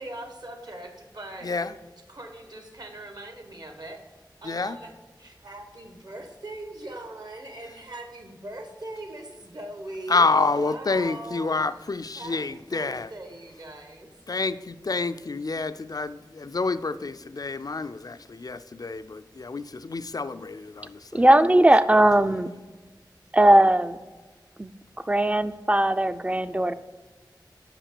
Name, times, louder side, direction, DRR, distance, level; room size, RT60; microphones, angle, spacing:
voice 1, 0.0-1.7 2.1-4.0 4.4-4.9 5.2-11.6 12.2-14.1, right 1 dB, 60° right, 4 dB, 1.2 m, -40 dB
voice 2, 1.4-1.7 4.4-4.8 10.1-13.1 14.3-21.2, left 3 dB, 55° left, 13 dB, 0.3 m, -28 dB
voice 3, 21.1-22.5 23.3-24.0 24.6-24.7 25.1-26.7, right 1 dB, 15° right, 12 dB, 0.4 m, -19 dB
6.0 x 5.1 x 6.7 m, 1.2 s
wide cardioid pair, 55°, 8 cm